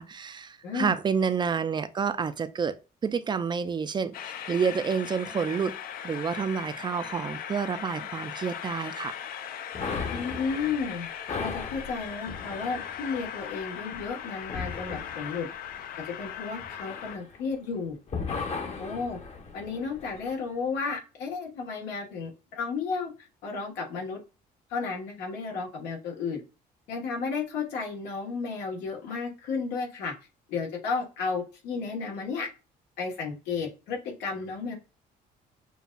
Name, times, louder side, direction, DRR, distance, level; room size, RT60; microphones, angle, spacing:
voice 1, 0.0-5.8 6.0-9.1, right 6 dB, 25° right, 0.4 m, -29 dB
voice 2, 0.6-1.0 10.1-11.1 11.4-15.5 16.0-18.0 18.8-19.2 19.5-24.2 24.7-26.4 26.9-30.1 30.5-32.5 33.0-34.8, left 5 dB, 90° left, 1.4 m, -33 dB
Train, 4.1-17.2, left 9 dB, 60° left, 0.5 m, -39 dB
sound 1, 9.7-17.8 18.1-20.4, left 5 dB, 40° left, 0.9 m, -38 dB
6.8 x 2.4 x 2.3 m
cardioid pair, 110°, 17 cm